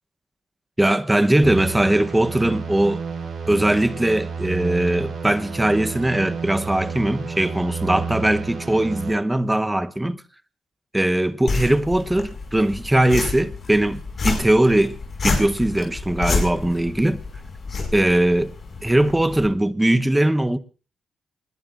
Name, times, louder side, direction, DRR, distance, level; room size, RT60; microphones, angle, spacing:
voice 1, 0.8-3.0 3.5-10.2 10.9-15.0 15.2-17.2 17.9-18.5 18.8-20.6, right 1 dB, 10° right, 1.0 m, -20 dB
sound 1, 1.4-9.1, right 5 dB, 55° right, 5.9 m, -31 dB
sound 2, 11.5-19.5, left 4 dB, 50° left, 5.7 m, -29 dB
27.0 x 20.5 x 2.6 m
cardioid pair, 95°, 0 cm